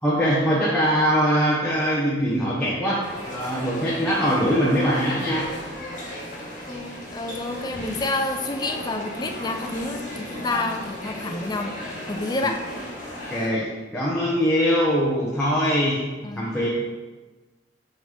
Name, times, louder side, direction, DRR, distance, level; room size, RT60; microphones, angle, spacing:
voice 1, 0.0-5.5 10.5-10.6 12.4-12.5 13.3-16.9, equal, 5° left, -8 dB, 0.9 m, -22 dB
sound 1, 3.0-13.5, left 1 dB, 45° left, 1.8 m, -35 dB
voice 2, 6.7-11.7 12.1-12.6 16.2-16.5, left 2 dB, 20° left, 4 dB, 0.4 m, -29 dB
4.8 x 4.0 x 5.0 m, 1.3 s
head